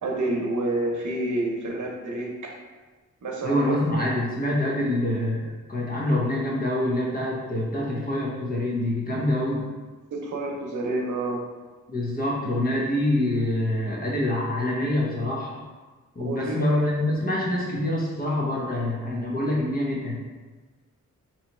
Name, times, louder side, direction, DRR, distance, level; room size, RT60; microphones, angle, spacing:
voice 1, 0.0-2.5 3.2-3.7 10.1-11.5 16.3-16.7, right 2 dB, 70° right, -1 dB, 0.8 m, -28 dB
voice 2, 3.4-9.7 11.9-15.6 16.1-20.2, left 1 dB, 30° left, -4 dB, 0.7 m, -26 dB
3.1 x 2.9 x 4.2 m, 1.3 s
wide cardioid pair, 175°, 30 cm